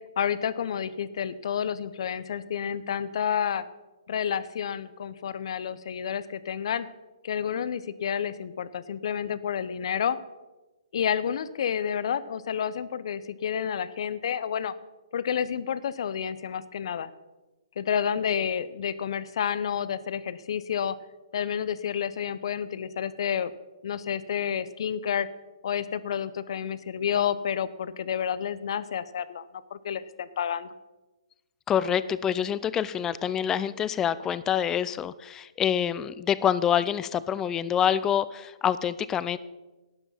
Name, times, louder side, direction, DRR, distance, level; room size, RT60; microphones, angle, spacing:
voice 1, 0.2-3.6 4.1-6.9 7.2-10.2 10.9-14.7 15.1-17.1 17.8-21.0 21.3-23.5 23.8-25.3 25.6-29.5 29.7-30.7, left 8 dB, 55° left, 16 dB, 0.7 m, -30 dB
voice 2, 31.7-39.4, left 9 dB, 15° left, 16 dB, 0.4 m, -26 dB
11.5 x 10.0 x 5.7 m, 1.1 s
figure-of-eight pair, 135°, 3 cm